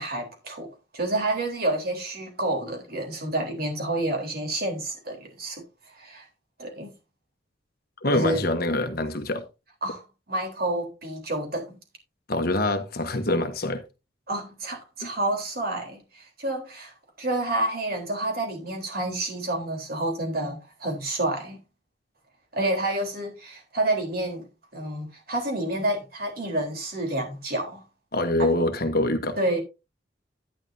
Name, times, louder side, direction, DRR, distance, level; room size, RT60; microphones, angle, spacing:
voice 1, 0.0-6.3 6.6-6.9 8.1-8.5 9.8-10.0 10.3-11.8 14.3-21.6 22.5-24.5 24.7-27.8 28.4-28.6 29.4-29.6, right 1 dB, 50° right, 3.7 m, -29 dB
voice 2, 8.0-9.5 12.3-13.8 15.0-15.1 28.1-29.4, left 1 dB, 50° left, 1.3 m, -25 dB
11.0 x 10.0 x 2.7 m
head